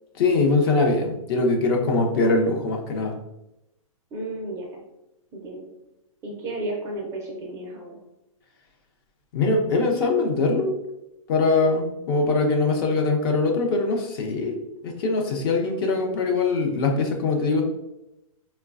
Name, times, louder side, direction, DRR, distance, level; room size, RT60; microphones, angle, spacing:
voice 1, 0.2-3.1 9.3-10.7 11.3-14.6 14.8-17.6, left 3 dB, 40° left, 2 dB, 0.6 m, -22 dB
voice 2, 4.1-4.8 5.3-5.7 6.2-8.0, right 2 dB, 15° right, -1 dB, 0.4 m, -33 dB
3.9 x 2.1 x 2.4 m, 0.89 s
hypercardioid pair, 140°, 18 cm